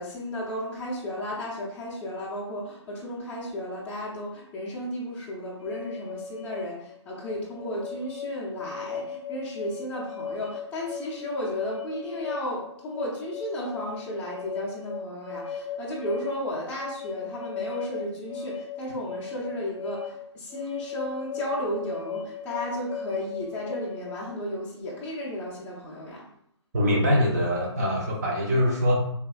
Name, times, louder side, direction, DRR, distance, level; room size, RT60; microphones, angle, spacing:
voice 1, 0.0-26.2, left 1 dB, 10° left, -6 dB, 0.5 m, -34 dB
sound 1, 5.6-24.4, left 6 dB, 90° left, 0.4 m, -38 dB
voice 2, 26.7-29.0, equal, 35° right, -1 dB, 0.7 m, -23 dB
3.4 x 2.7 x 2.3 m, 0.72 s
figure-of-eight pair, 145°, 15 cm